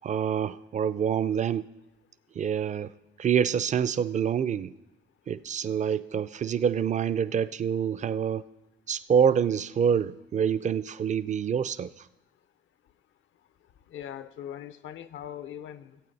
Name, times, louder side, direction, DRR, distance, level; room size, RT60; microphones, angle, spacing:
voice 1, 0.0-1.7 2.4-2.9 3.2-4.7 5.3-8.4 8.9-11.9, right 8 dB, 40° right, 16 dB, 0.4 m, -26 dB
voice 2, 13.9-16.0, left 10 dB, 75° left, 14 dB, 0.6 m, -40 dB
15.5 x 8.3 x 4.1 m, 1.0 s
cardioid pair, 90°, 20 cm